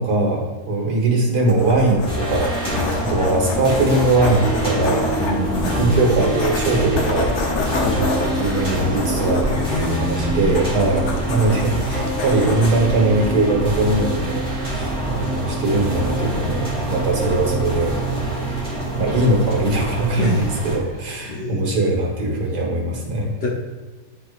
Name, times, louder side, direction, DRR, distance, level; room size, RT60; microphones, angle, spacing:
voice 1, 0.0-5.1 5.8-7.6 8.0-18.0 19.0-23.3, right 2 dB, 85° right, 0 dB, 1.9 m, -21 dB
sound 1, 1.5-14.2, left 2 dB, 70° left, 1.4 m, -29 dB
sound 2, 2.1-20.8, right 1 dB, 5° left, 1.5 m, -25 dB
sound 3, 4.4-12.8 13.3-13.4, right 2 dB, 40° right, 1.5 m, -33 dB
voice 2, 5.2-6.0 7.4-7.6 7.8-8.0 9.5-10.5 20.2-20.5 21.3-21.8 23.4-23.5, left 1 dB, 50° left, -2 dB, 0.8 m, -26 dB
10.0 x 4.6 x 2.5 m, 1.3 s
omnidirectional pair, 1.7 m